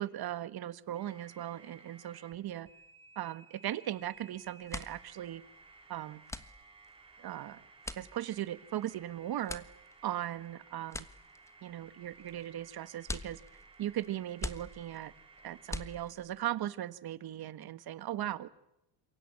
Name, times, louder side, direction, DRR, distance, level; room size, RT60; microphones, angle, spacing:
voice 1, 0.0-2.7 3.1-5.4 5.9-6.2 7.2-7.6 8.0-9.6 10.0-11.1 11.6-13.4 13.8-15.1 15.4-18.5, right 12 dB, 50° right, 13 dB, 1.5 m, -38 dB
sound 1, 0.9-2.3 2.6-16.1, right 4 dB, 10° right, 4.6 m, -58 dB
sound 2, 4.0-4.2 4.5-16.5, left 1 dB, 5° left, 1.3 m, -45 dB
27.0 x 23.5 x 8.7 m, 0.86 s
cardioid pair, 120°, 50 cm